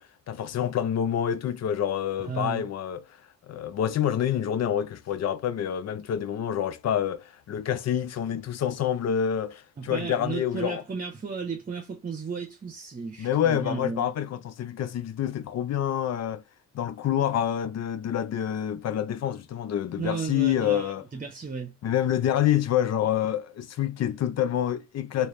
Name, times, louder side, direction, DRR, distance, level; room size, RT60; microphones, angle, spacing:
voice 1, 0.0-3.0 3.5-10.8 13.2-16.4 16.7-21.0 21.8-25.3, left 10 dB, 60° left, 0.6 m, -27 dB
voice 2, 2.2-2.7 9.8-14.1 20.0-21.7, right 5 dB, 30° right, 0.9 m, -34 dB
3.1 x 2.9 x 3.2 m
cardioid pair, 90°, 30 cm